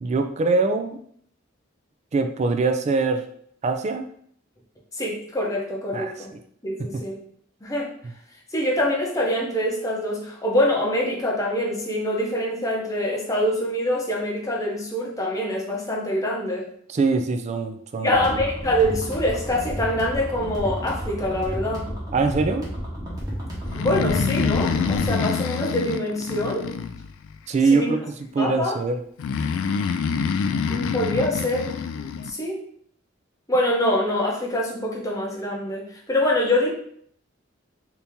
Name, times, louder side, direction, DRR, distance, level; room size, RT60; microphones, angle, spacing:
voice 1, 0.0-1.0 2.1-3.2 3.6-4.1 5.9-6.1 6.9-7.0 16.9-18.4 22.1-22.7 27.5-28.0 28.3-29.0, right 3 dB, 35° right, 7 dB, 0.3 m, -23 dB
voice 2, 5.0-6.3 6.6-7.2 7.6-7.9 8.5-16.6 18.0-21.9 23.7-26.7 27.7-27.9 28.4-28.8 30.7-31.7 32.2-32.6 33.5-36.7, left 1 dB, 15° left, -3 dB, 0.7 m, -25 dB
sound 1, 18.1-25.2, equal, 20° right, 1.1 m, -32 dB
Breathing, 23.7-27.4 29.2-32.3, left 6 dB, 80° left, 0.3 m, -26 dB
2.9 x 2.7 x 3.5 m, 0.64 s
head